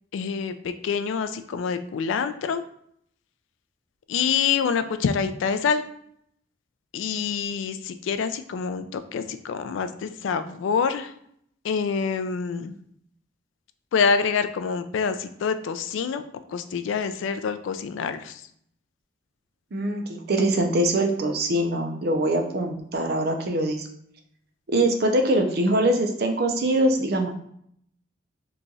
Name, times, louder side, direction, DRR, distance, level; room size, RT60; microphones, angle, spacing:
voice 1, 0.1-2.6 4.1-5.8 6.9-11.1 11.6-12.7 13.9-16.2 16.5-18.4, left 6 dB, 80° left, 10 dB, 0.3 m, -26 dB
voice 2, 19.7-23.9 24.7-27.3, right 1 dB, 50° right, 4 dB, 0.5 m, -23 dB
3.0 x 2.3 x 3.9 m, 0.69 s
head